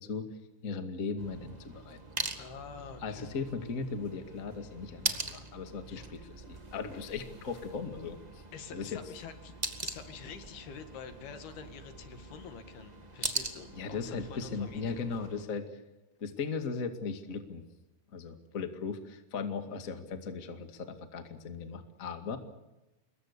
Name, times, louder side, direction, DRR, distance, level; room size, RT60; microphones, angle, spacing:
voice 1, 0.6-2.0 3.0-6.2 6.5-8.4 8.7-9.0 13.8-15.6 16.2-17.6 18.1-22.4, left 5 dB, 30° left, 7 dB, 1.8 m, -37 dB
sound 1, 1.2-15.4, right 2 dB, 65° right, 0.4 m, -42 dB
voice 2, 2.4-3.3 5.9-6.3 8.5-9.5 9.8-15.0, left 6 dB, 80° left, 8 dB, 4.0 m, -47 dB
26.0 x 22.5 x 6.8 m, 0.98 s
omnidirectional pair, 4.4 m